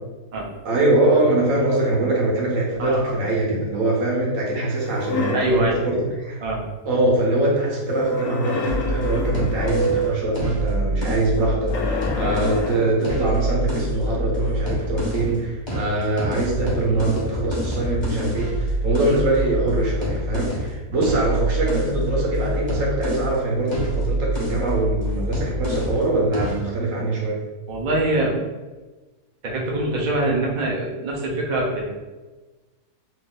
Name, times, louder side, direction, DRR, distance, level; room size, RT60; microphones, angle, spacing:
voice 1, 0.6-6.4 6.8-27.4, right 2 dB, 60° right, -3 dB, 1.3 m, -23 dB
voice 2, 2.8-3.1 5.3-5.8 6.4-6.6 27.7-28.4 29.4-31.9, right 1 dB, 45° right, -2 dB, 0.6 m, -23 dB
sound 1, 4.7-5.6 7.8-10.3 11.7-13.0, equal, 70° left, 0.9 m, -27 dB
sound 2, 8.7-12.6 13.0-15.4 15.7-23.4 23.7-26.1 26.3-26.7, equal, 20° left, 0.8 m, -27 dB
3.1 x 2.6 x 3.8 m, 1.2 s
omnidirectional pair, 1.7 m